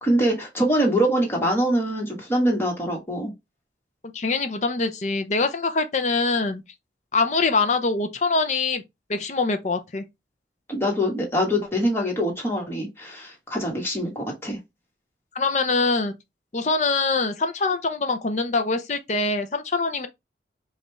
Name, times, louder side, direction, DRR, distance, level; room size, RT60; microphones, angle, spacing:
voice 1, 0.0-3.3 10.7-14.6, equal, 15° left, 1.4 m, -24 dB
voice 2, 4.1-6.6 7.1-8.8 9.1-10.0 15.3-16.1 16.5-20.1, left 3 dB, 40° left, 0.5 m, -24 dB
5.2 x 2.4 x 3.2 m
head